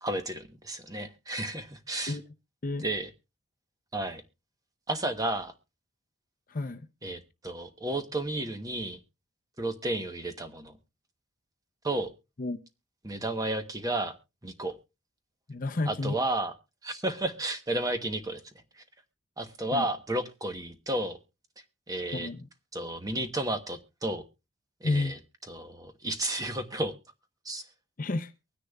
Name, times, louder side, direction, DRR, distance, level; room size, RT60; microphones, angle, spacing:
voice 1, 0.0-2.2 2.8-3.1 3.9-4.2 4.9-5.5 7.0-9.0 9.6-10.8 11.8-12.1 13.0-14.1 14.4-14.8 15.9-16.5 16.8-18.4 18.8-18.9 19.4-21.2 21.9-22.3 22.7-24.2 24.8-25.2 25.5-26.9 27.4-27.7, right 1 dB, 15° right, 0.9 m, -32 dB
voice 2, 6.5-6.9 12.4-12.6 15.5-16.1 19.7-19.9 22.1-22.5 24.8-25.1 28.0-28.3, left 2 dB, 40° left, 0.6 m, -30 dB
23.5 x 10.0 x 2.3 m
head